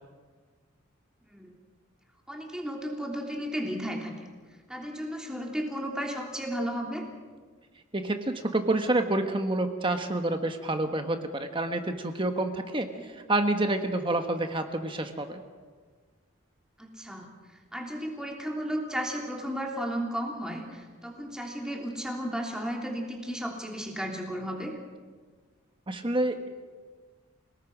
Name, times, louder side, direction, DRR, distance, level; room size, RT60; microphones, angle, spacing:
voice 1, 1.2-1.6 2.3-4.1 4.7-7.0 12.9-13.0 16.8-17.3 17.7-24.8, equal, 5° right, 0 dB, 3.2 m, -34 dB
voice 2, 7.9-15.4 25.9-26.5, right 2 dB, 25° right, 6 dB, 1.3 m, -28 dB
28.0 x 19.0 x 6.1 m, 1.5 s
head